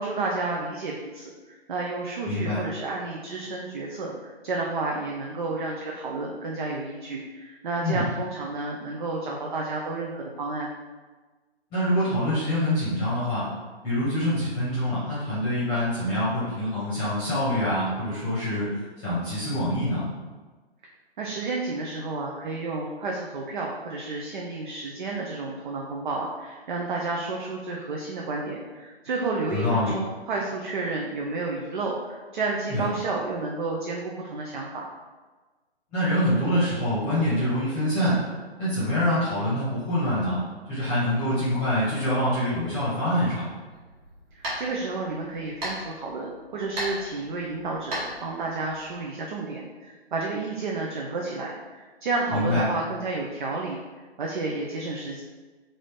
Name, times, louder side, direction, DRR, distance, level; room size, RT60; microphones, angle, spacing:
voice 1, 0.0-10.7 21.2-34.9 44.3-53.8 54.2-55.2, right 3 dB, 50° right, -1 dB, 0.5 m, -31 dB
voice 2, 2.3-2.6 7.8-8.1 11.7-13.5 13.8-18.7 19.0-20.1 29.5-29.9 32.7-32.9 35.9-38.2 38.6-40.4 40.7-43.4 52.3-52.6, left 1 dB, 15° left, -10 dB, 0.9 m, -25 dB
sound 1, 43.7-49.0, equal, 20° right, 0.9 m, -37 dB
3.8 x 2.6 x 3.4 m, 1.3 s
figure-of-eight pair, 135°, 32 cm